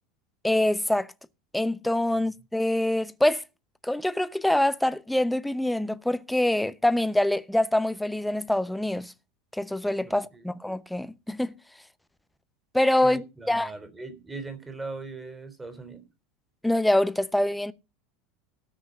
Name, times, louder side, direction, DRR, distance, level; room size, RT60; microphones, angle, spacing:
voice 1, 0.4-1.1 1.5-3.4 3.8-9.1 9.5-11.6 12.7-13.7 16.6-17.7, left 1 dB, 5° left, 0.8 m, -25 dB
voice 2, 10.0-10.5 13.0-16.1, right 3 dB, 15° right, 3.6 m, -40 dB
18.0 x 6.2 x 5.3 m
figure-of-eight pair, 75°, 0 cm